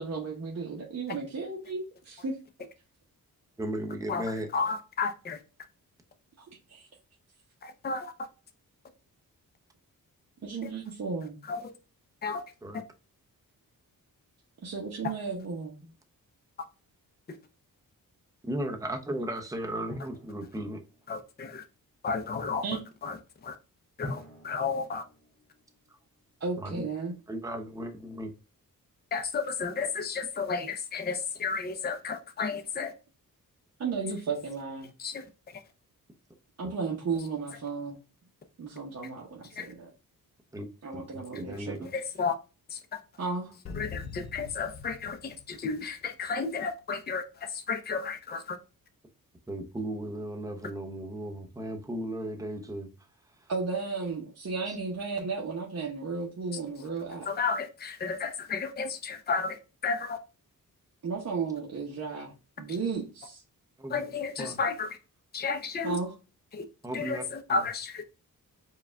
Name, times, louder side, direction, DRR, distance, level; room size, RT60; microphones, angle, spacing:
voice 1, 0.0-2.4 6.4-6.9 10.4-11.4 14.6-15.8 22.6-22.8 26.4-27.1 33.8-34.9 36.6-38.0 38.6-39.9 40.8-41.9 43.2-43.5 53.5-57.3 61.0-62.3 62.6-63.4 65.8-66.1, right 4 dB, 50° right, 0.9 m, -34 dB
voice 2, 3.6-4.5 12.6-12.8 15.8-15.9 18.4-20.8 26.6-26.9 27.3-28.3 40.5-40.7 40.9-41.9 49.5-52.9 54.7-54.8 63.8-64.0 64.4-64.6 66.8-67.6, right 1 dB, 10° right, 0.7 m, -36 dB
voice 3, 4.5-5.4 7.6-8.1 11.5-11.7 12.2-12.4 17.3-17.4 21.1-21.6 22.0-23.2 23.4-23.5 24.0-25.0 29.1-32.9 35.0-35.3 35.5-35.6 39.6-39.7 41.3-41.4 41.8-42.3 42.7-43.0 43.8-48.6 57.3-60.2 62.7-62.8 63.9-65.0 65.3-66.0 66.5-66.6 66.9-68.0, left 5 dB, 30° left, 0.5 m, -32 dB
Drum, 19.9-21.4 24.0-26.2, left 1 dB, 10° left, 1.4 m, -45 dB
sound 1, 43.7-46.4, left 5 dB, 85° left, 0.6 m, -43 dB
4.6 x 2.4 x 3.3 m
wide cardioid pair, 115°, 34 cm